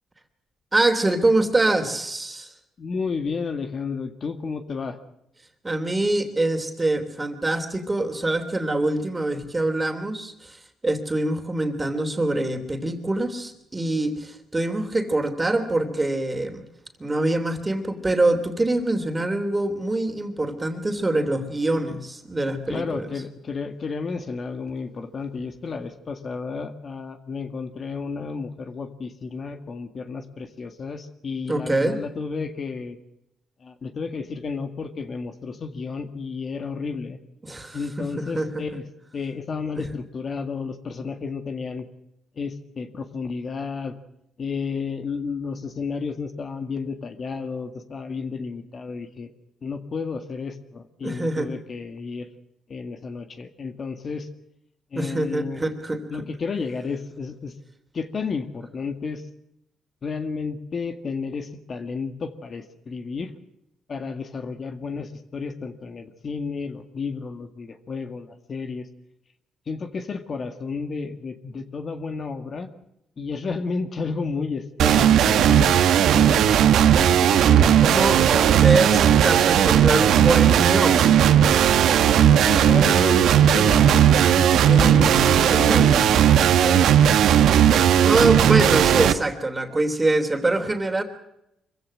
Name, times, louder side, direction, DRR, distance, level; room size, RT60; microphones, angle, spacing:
voice 1, 0.7-2.5 5.6-10.6 10.8-16.6 17.0-23.1 31.5-32.0 37.4-38.6 39.8-39.9 51.0-51.5 54.9-56.0 77.8-81.1 85.5-85.9 88.0-91.0, right 2 dB, 20° right, 7 dB, 3.2 m, -24 dB
voice 2, 2.8-5.0 22.7-33.0 33.6-37.2 37.7-38.8 39.1-41.9 42.4-44.0 44.4-49.3 49.6-52.3 52.7-54.3 54.9-55.6 56.1-57.5 57.9-59.2 60.0-63.3 63.9-68.9 69.7-72.7 73.2-76.4 77.0-77.8 82.1-86.9 87.8-87.9, left 4 dB, 45° left, 8 dB, 2.0 m, -32 dB
sound 1, 74.8-89.1, right 9 dB, 80° right, 1.3 m, -16 dB
24.5 x 16.0 x 7.8 m, 0.82 s
cardioid pair, 90°, 0 cm